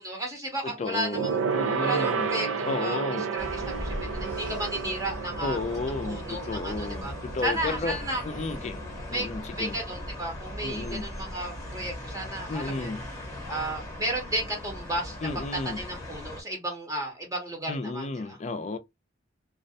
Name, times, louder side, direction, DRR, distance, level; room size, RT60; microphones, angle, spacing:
voice 1, 0.0-1.3 1.8-3.0 3.3-5.6 6.1-7.1 7.4-8.5 9.1-9.3 9.6-12.9 13.5-15.4 15.7-18.4, right 1 dB, 15° right, 0.7 m, -33 dB
voice 2, 0.6-2.3 2.7-3.3 5.4-8.0 8.2-8.8 9.1-9.8 10.6-11.1 12.5-13.0 15.2-15.8 17.7-18.8, left 3 dB, 35° left, 0.4 m, -33 dB
Gong, 1.1-10.9 11.2-11.5 11.8-11.9, right 5 dB, 90° right, 0.4 m, -33 dB
sound 1, 3.4-16.4, left 1 dB, 15° left, 0.9 m, -39 dB
2.4 x 2.1 x 2.6 m
head